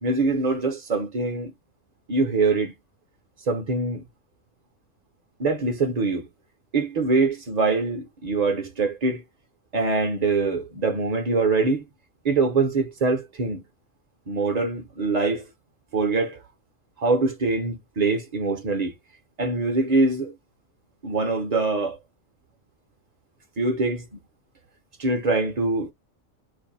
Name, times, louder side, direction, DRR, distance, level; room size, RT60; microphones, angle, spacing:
voice 1, 0.0-1.5 2.1-2.7 3.4-4.0 5.4-6.3 6.7-9.2 9.7-11.8 12.2-13.6 14.3-15.5 15.9-16.4 17.0-18.9 19.4-20.3 21.0-22.0 23.6-24.0 25.0-25.9, right 3 dB, 40° right, 0.6 m, -23 dB
2.6 x 2.5 x 3.9 m
omnidirectional pair, 1.3 m